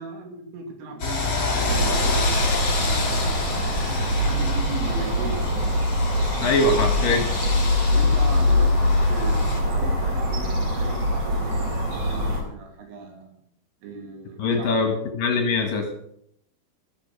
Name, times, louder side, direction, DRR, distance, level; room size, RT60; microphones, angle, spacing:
voice 1, 0.0-3.7 3.9-5.8 7.9-13.4 13.8-14.8, right 3 dB, 85° right, 3 dB, 5.2 m, -37 dB
sound 1, 1.0-9.6, left 3 dB, 30° left, 3.4 m, -29 dB
sound 2, 1.7-12.4, left 1 dB, 35° right, 4.5 m, -23 dB
voice 2, 6.4-7.3 14.4-15.9, left 3 dB, 60° left, 4 dB, 2.6 m, -22 dB
14.0 x 11.0 x 6.4 m, 0.71 s
omnidirectional pair, 5.6 m